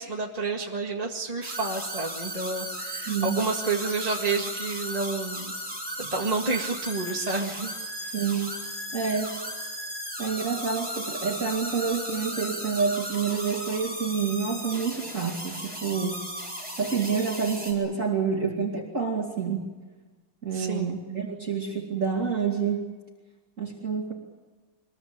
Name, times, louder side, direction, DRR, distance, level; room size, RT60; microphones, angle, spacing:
voice 1, 0.0-5.5 6.0-7.7 8.0-8.2 20.5-20.9, right 3 dB, 20° right, 0 dB, 1.9 m, -30 dB
sound 1, 1.4-17.7, equal, 5° right, 7.5 m, -36 dB
voice 2, 3.1-3.4 8.1-8.5 8.9-9.4 10.2-16.2 16.8-19.6 20.4-22.8 23.6-24.1, right 6 dB, 40° right, -1 dB, 3.0 m, -28 dB
25.5 x 21.5 x 8.9 m, 1.3 s
omnidirectional pair, 2.2 m